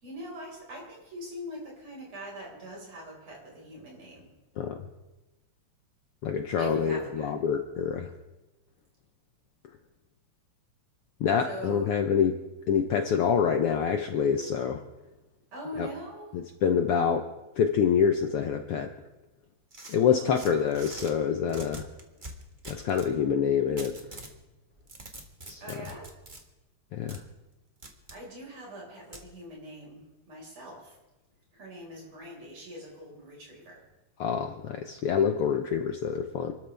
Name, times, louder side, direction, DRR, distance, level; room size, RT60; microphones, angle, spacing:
voice 1, 0.0-4.3 6.6-7.3 11.4-11.9 15.5-16.4 20.1-21.0 25.6-26.1 28.1-31.0 31.5-33.8, equal, 60° right, -2 dB, 6.2 m, -42 dB
voice 2, 6.2-8.1 11.2-12.4 12.7-14.8 15.8-15.9 16.3-17.3 17.6-18.9 19.9-21.9 22.6-24.0 25.5-25.6 26.9-27.2 34.2-36.5, left 7 dB, 70° left, 5 dB, 1.5 m, -26 dB
sound 1, 19.7-21.1 21.5-23.1 23.8-24.4 24.7-26.4 27.1-27.2 27.8-28.2 29.1-29.3, right 2 dB, 25° right, 1.1 m, -44 dB
28.5 x 13.0 x 3.4 m, 1.1 s
omnidirectional pair, 3.3 m